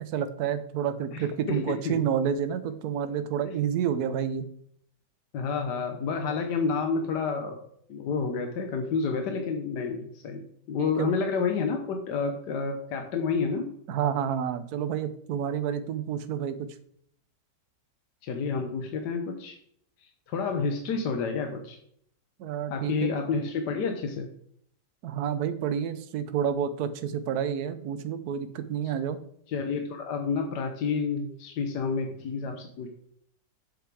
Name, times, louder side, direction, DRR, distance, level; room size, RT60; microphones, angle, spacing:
voice 1, 0.0-4.5 10.8-11.1 13.9-16.6 22.4-23.1 25.0-29.2, right 8 dB, 70° right, 10 dB, 1.2 m, -29 dB
voice 2, 1.1-2.0 5.3-7.6 7.9-13.7 18.2-19.6 20.0-21.8 22.7-24.3 29.5-32.9, left 5 dB, 80° left, 4 dB, 1.5 m, -29 dB
8.0 x 6.8 x 4.7 m, 0.67 s
omnidirectional pair, 1.9 m